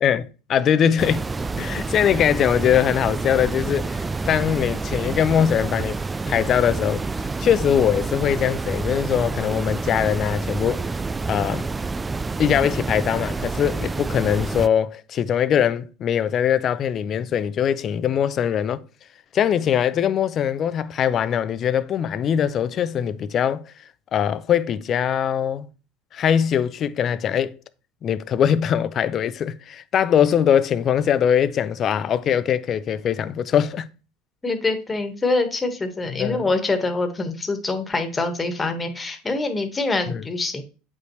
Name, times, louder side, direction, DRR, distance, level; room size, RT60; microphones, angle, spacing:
voice 1, 0.0-1.3 1.6-6.0 6.3-10.8 11.3-11.7 12.4-18.8 19.3-23.7 24.1-25.7 26.1-27.5 28.0-33.9 36.1-36.4 40.1-40.2, left 9 dB, 45° left, 0.6 m, -22 dB
sound 1, 1.0-14.7, right 3 dB, 15° right, 0.3 m, -28 dB
voice 2, 34.4-40.6, left 3 dB, 20° left, 1.5 m, -25 dB
8.2 x 5.3 x 3.2 m
supercardioid pair, 100°, 0 cm